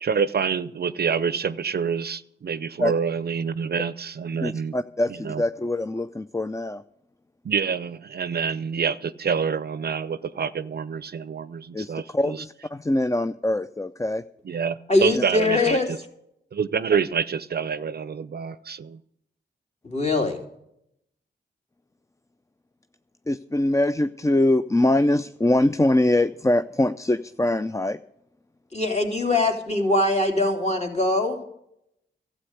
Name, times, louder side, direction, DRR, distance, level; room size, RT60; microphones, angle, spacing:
voice 1, 0.0-4.7 5.2-5.4 7.4-12.4 14.5-16.0 16.5-19.0, right 6 dB, 55° right, 16 dB, 0.6 m, -27 dB
voice 2, 4.4-6.8 11.7-14.2 15.1-15.2 23.3-28.0, left 1 dB, 15° left, 11 dB, 0.5 m, -23 dB
voice 3, 14.9-15.9 19.8-20.4 28.7-31.4, left 2 dB, 35° left, 2 dB, 3.2 m, -22 dB
12.5 x 7.8 x 8.2 m, 0.76 s
supercardioid pair, 40°, 20 cm